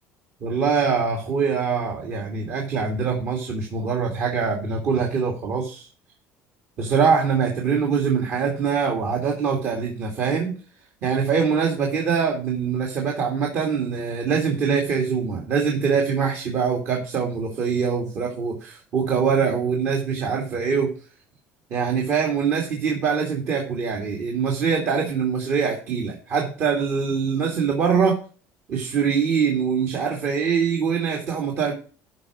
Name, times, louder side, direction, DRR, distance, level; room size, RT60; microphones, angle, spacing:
voice 1, 0.4-5.9 6.8-10.5 11.0-20.9 21.7-28.2 28.7-31.7, right 6 dB, 50° right, 1 dB, 2.5 m, -23 dB
12.5 x 5.0 x 6.2 m, 0.37 s
cardioid pair, 155°, 5 cm